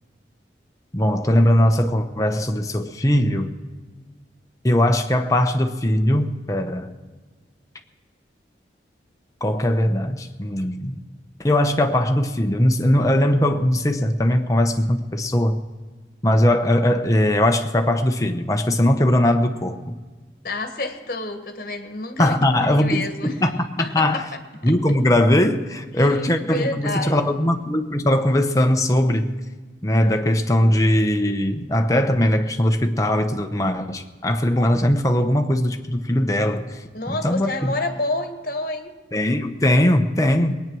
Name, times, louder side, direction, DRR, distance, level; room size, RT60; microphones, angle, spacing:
voice 1, 0.9-3.5 4.6-6.9 9.4-11.0 11.4-15.6 16.2-20.0 22.2-24.3 24.6-29.2 29.8-36.8 37.1-37.7 39.1-40.6, left 1 dB, 20° left, 5 dB, 0.9 m, -20 dB
voice 2, 20.4-23.4 23.8-24.7 26.0-27.2 36.9-38.9, left 2 dB, 50° left, 6 dB, 1.5 m, -29 dB
20.0 x 9.2 x 6.2 m, 1.4 s
head